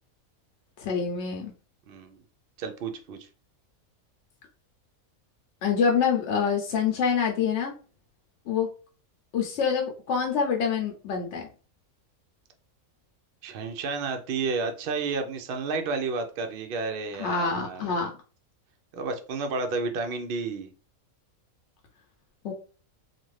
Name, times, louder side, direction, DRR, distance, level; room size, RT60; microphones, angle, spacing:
voice 1, 0.8-1.5 5.6-7.7 8.5-8.7 9.3-11.5 17.2-18.1 22.4-22.5, left 6 dB, 65° left, 1 dB, 0.8 m, -26 dB
voice 2, 1.9-2.2 2.6-3.3 13.4-18.1 18.9-20.7, right 4 dB, 70° right, 5 dB, 0.5 m, -31 dB
2.5 x 2.5 x 3.1 m, 0.37 s
omnidirectional pair, 1.5 m